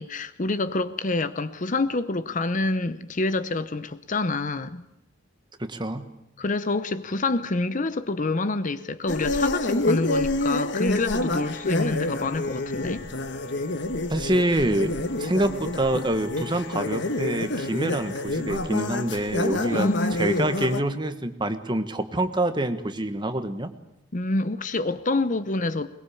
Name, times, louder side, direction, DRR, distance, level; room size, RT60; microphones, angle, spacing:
voice 1, 0.0-4.8 6.4-13.1 19.7-20.5 24.1-25.9, left 2 dB, 40° left, 0.8 m, -27 dB
voice 2, 5.6-6.1 14.1-19.9 20.2-23.7, right 1 dB, 25° right, 1.4 m, -26 dB
sound 1, 9.1-20.8, left 2 dB, 60° left, 1.4 m, -28 dB
22.0 x 21.0 x 8.5 m
head